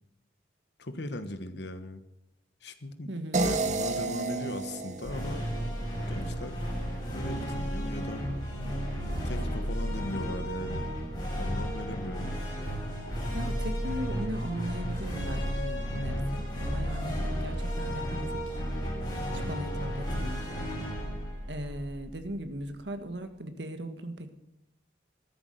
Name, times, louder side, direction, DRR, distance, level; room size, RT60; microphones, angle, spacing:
voice 1, 0.8-2.0 2.6-3.1 3.4-5.5 6.1-6.7 7.1-8.2 9.2-10.9 11.4-12.3, left 1 dB, 70° left, 10 dB, 1.4 m, -38 dB
voice 2, 3.1-3.5 13.3-18.6 19.2-20.4 21.1-21.2 21.5-24.3, equal, 75° right, 8 dB, 1.6 m, -38 dB
sound 1, 3.3-6.4, right 2 dB, 40° right, 1.2 m, -32 dB
sound 2, 5.0-22.5, equal, 25° left, 6.8 m, -33 dB
13.0 x 11.0 x 7.8 m, 0.82 s
head